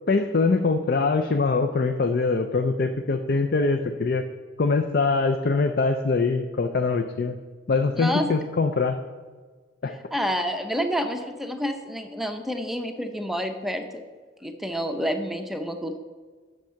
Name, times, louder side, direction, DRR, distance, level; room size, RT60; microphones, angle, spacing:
voice 1, 0.1-4.3 4.6-7.3 7.7-9.0 9.8-10.0, left 4 dB, 50° left, 7 dB, 0.4 m, -23 dB
voice 2, 8.0-8.3 10.1-14.0 14.4-16.0, equal, ahead, 5 dB, 0.6 m, -28 dB
8.8 x 6.6 x 5.7 m, 1.4 s
head